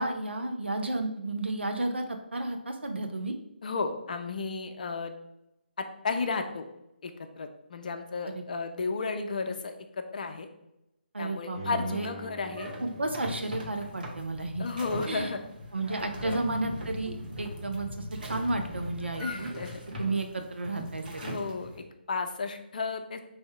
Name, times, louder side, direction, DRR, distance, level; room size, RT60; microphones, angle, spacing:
voice 1, 0.0-3.4 8.2-8.4 11.1-12.1 12.8-14.7 15.1-15.3 15.7-19.5 20.0-21.2, right 2 dB, 80° right, 5 dB, 0.5 m, -32 dB
voice 2, 3.6-5.1 5.8-6.7 7.0-10.5 11.2-12.7 14.6-15.4 16.2-16.4 19.2-19.8 21.2-23.2, left 4 dB, 50° left, 6 dB, 0.5 m, -33 dB
Bowed string instrument, 11.5-14.7 15.1-15.2, right 3 dB, 20° right, 0.6 m, -45 dB
sound 1, 12.5-21.8, equal, 55° right, 1.0 m, -40 dB
3.4 x 2.7 x 4.4 m, 0.86 s
figure-of-eight pair, 145°, 6 cm